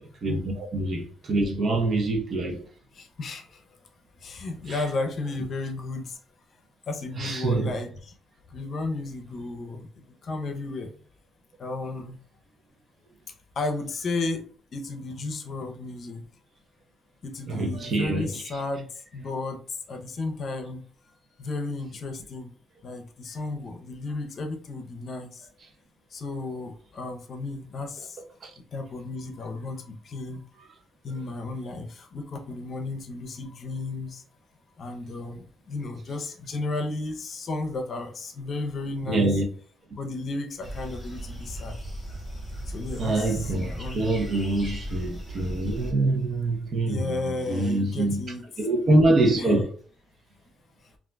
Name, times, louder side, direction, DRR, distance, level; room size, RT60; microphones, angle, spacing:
voice 1, 0.2-2.6 4.7-4.8 7.2-7.8 17.5-18.4 28.4-28.5 39.1-39.4 43.0-48.2 48.6-49.7, right 2 dB, 50° right, 0.7 m, -25 dB
voice 2, 2.9-3.6 4.2-6.2 6.9-8.1 8.5-9.9 10.2-10.9 11.6-12.2 13.6-14.4 14.7-16.2 17.2-19.6 19.9-20.8 21.4-22.5 22.8-25.5 26.1-28.2 28.7-30.4 31.0-34.2 34.8-39.3 40.0-41.8 42.7-44.1 46.9-48.4 49.4-49.6, left 3 dB, 55° left, 0.6 m, -33 dB
sound 1, 40.6-45.9, right 1 dB, 20° left, 1.2 m, -37 dB
3.6 x 2.5 x 2.2 m
cardioid pair, 90°, 0 cm